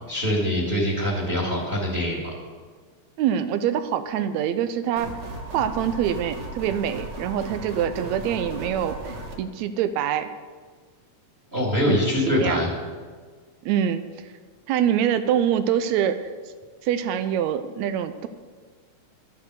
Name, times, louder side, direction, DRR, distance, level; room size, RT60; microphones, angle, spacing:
voice 1, 0.1-2.3 11.5-12.7, equal, 25° right, -3 dB, 2.1 m, -23 dB
voice 2, 3.2-5.1 5.5-10.3 11.9-12.0 12.3-12.6 13.7-14.1 14.7-16.2 16.8-18.3, right 9 dB, 80° right, 10 dB, 1.9 m, -25 dB
sound 1, 5.0-9.4, right 2 dB, 40° right, 1.0 m, -36 dB
12.0 x 8.2 x 6.7 m, 1.5 s
omnidirectional pair, 3.3 m